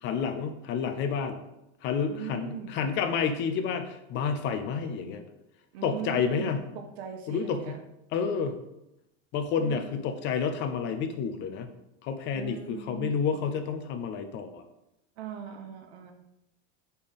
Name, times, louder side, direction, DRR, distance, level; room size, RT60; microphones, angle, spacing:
voice 1, 0.0-1.4 1.8-5.2 5.8-6.7 7.3-7.8 8.1-8.6 9.3-11.7 12.0-14.6, left 6 dB, 35° left, 8 dB, 0.5 m, -30 dB
voice 2, 2.1-2.7 5.7-7.8 9.6-9.9 12.3-13.4 15.2-16.1, right 7 dB, 70° right, 5 dB, 1.2 m, -40 dB
5.2 x 4.4 x 5.2 m, 0.88 s
supercardioid pair, 155°, 34 cm